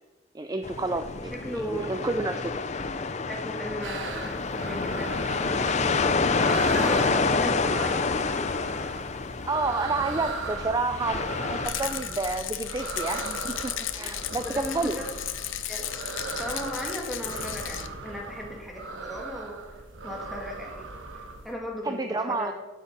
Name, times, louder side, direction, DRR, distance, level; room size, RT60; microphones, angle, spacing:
voice 1, 0.3-2.5 9.5-11.2 11.5-15.0 21.8-22.5, right 3 dB, 20° right, 8 dB, 0.4 m, -30 dB
sound 1, 0.6-11.7, left 4 dB, 35° left, 0.5 m, -28 dB
voice 2, 1.3-2.1 3.2-9.0 13.9-15.1 15.7-16.0 16.4-20.9 21.1-22.5, equal, ahead, -1 dB, 1.9 m, -37 dB
sound 2, 3.8-21.5, right 3 dB, 80° right, 1.3 m, -38 dB
Rattle, 11.6-17.9, left 11 dB, 85° left, 0.8 m, -35 dB
13.0 x 8.4 x 6.0 m, 1.3 s
head